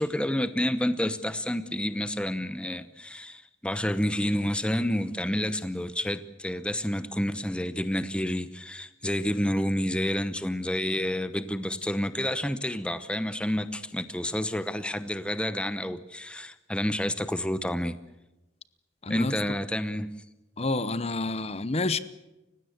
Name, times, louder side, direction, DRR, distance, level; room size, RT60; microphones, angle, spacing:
voice 1, 0.0-17.9 19.1-20.1, left 1 dB, 5° left, 12 dB, 0.8 m, -29 dB
voice 2, 19.0-19.3 20.6-22.0, left 2 dB, 30° left, 15 dB, 0.9 m, -28 dB
30.0 x 16.5 x 8.0 m, 1.0 s
head